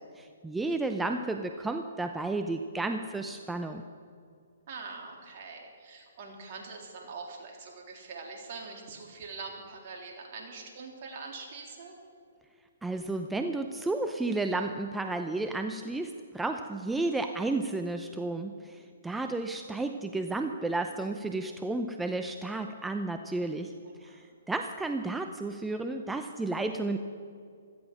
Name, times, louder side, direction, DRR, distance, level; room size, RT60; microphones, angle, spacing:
voice 1, 0.2-3.8 12.8-23.7 24.0-27.0, right 2 dB, 5° right, 6 dB, 0.7 m, -32 dB
voice 2, 4.7-12.0 23.6-24.2, right 4 dB, 45° right, 1 dB, 3.6 m, -44 dB
16.5 x 14.0 x 6.2 m, 2.2 s
hypercardioid pair, 135°, 0 cm